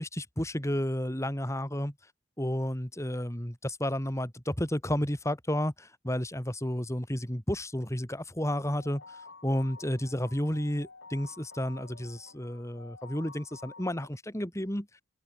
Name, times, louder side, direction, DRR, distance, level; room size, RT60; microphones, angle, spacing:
voice 1, 0.0-1.9 2.4-14.9, equal, 15° left, 3.4 m, -32 dB
sound 1, 8.4-14.1, left 3 dB, 85° left, 6.6 m, -51 dB
head